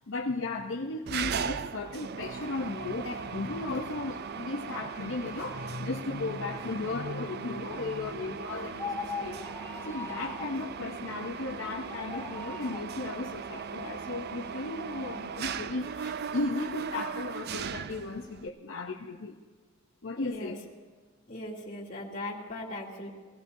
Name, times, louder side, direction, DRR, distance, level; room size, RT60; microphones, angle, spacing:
voice 1, 0.1-9.5 9.9-19.4 20.0-20.6, left 3 dB, 75° left, 1 dB, 0.8 m, -35 dB
Mechanisms, 1.1-18.5, right 6 dB, 55° right, 0.4 m, -38 dB
sound 1, 8.7-10.6 11.9-12.9, left 4 dB, 10° left, 0.5 m, -39 dB
voice 2, 20.2-20.5 21.3-23.1, left 1 dB, 40° left, -4 dB, 2.7 m, -39 dB
23.5 x 16.5 x 2.7 m, 1.4 s
head